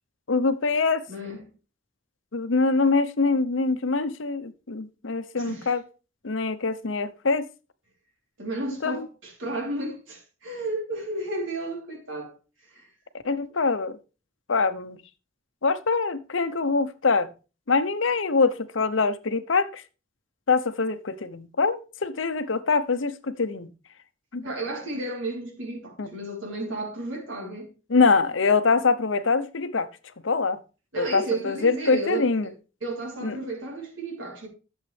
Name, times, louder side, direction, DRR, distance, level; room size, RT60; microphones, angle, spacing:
voice 1, 0.3-1.0 2.3-5.8 6.2-7.5 8.8-9.0 13.2-14.0 14.5-15.0 15.6-17.3 17.7-19.8 20.5-23.7 24.3-24.5 26.0-26.1 27.9-29.9 30.2-30.6 31.0-32.5 33.2-33.4, left 4 dB, 75° left, 0.8 m, -24 dB
voice 2, 1.1-1.4 5.4-5.7 8.4-12.3 12.7-12.9 24.4-27.7 30.9-32.5 32.8-34.5, right 2 dB, 85° right, 3.6 m, -33 dB
11.5 x 7.4 x 3.4 m
head